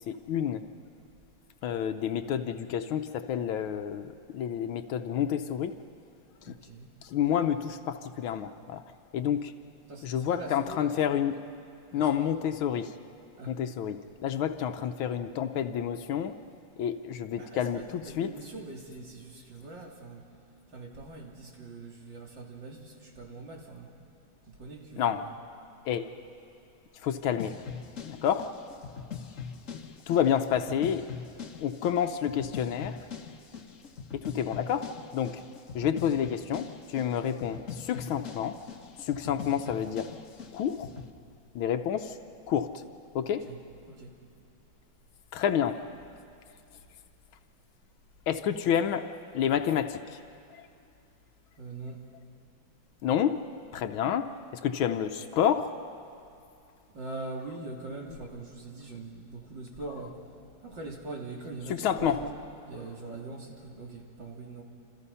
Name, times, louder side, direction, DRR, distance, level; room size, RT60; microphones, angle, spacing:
voice 1, 0.1-0.7 1.6-5.7 6.5-6.6 7.0-8.8 9.1-9.5 10.0-11.4 11.9-12.9 13.5-16.3 16.8-18.3 25.0-25.2 25.9-26.1 27.0-27.6 28.1-28.5 30.1-31.1 31.6-33.0 34.1-35.4 35.8-38.6 39.0-40.1 40.5-40.9 41.6-42.2 42.5-42.8 43.2-43.5 45.3-45.8 48.3-50.2 50.5-50.7 53.0-53.4 53.7-54.3 54.6-55.7 61.7-62.2, left 9 dB, 90° left, 7 dB, 1.6 m, -29 dB
voice 2, 6.4-6.9 9.9-10.9 11.9-12.3 13.4-13.5 17.4-20.2 20.7-23.9 24.4-25.3 43.4-43.6 43.9-44.1 51.6-52.0 56.9-60.2 60.6-62.4 62.6-64.6, right 3 dB, 60° right, -1 dB, 3.6 m, -42 dB
sound 1, 27.4-41.1, left 6 dB, 45° left, 1.3 m, -42 dB
28.5 x 27.0 x 5.6 m, 2.6 s
omnidirectional pair, 2.2 m